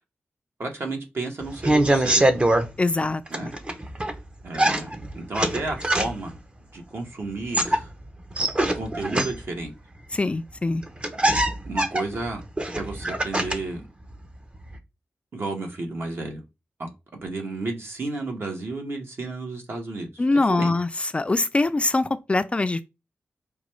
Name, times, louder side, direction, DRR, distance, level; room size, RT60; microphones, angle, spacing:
voice 1, 0.6-2.3 3.3-3.5 4.4-6.3 6.7-7.9 8.7-9.7 11.6-12.4 12.8-13.9 15.3-16.4 16.8-20.2 20.5-20.7, right 2 dB, 60° right, 1.1 m, -32 dB
sound 1, 1.4-2.7 3.3-4.2 4.5-6.4 7.3-9.6 10.5-10.6 10.8-13.8 14.1-14.8, right 1 dB, 25° right, 0.6 m, -23 dB
voice 2, 2.8-3.5 10.1-10.8 20.2-22.8, left 2 dB, 25° left, 0.3 m, -23 dB
4.9 x 2.2 x 3.1 m
wide cardioid pair, 85°, 4 cm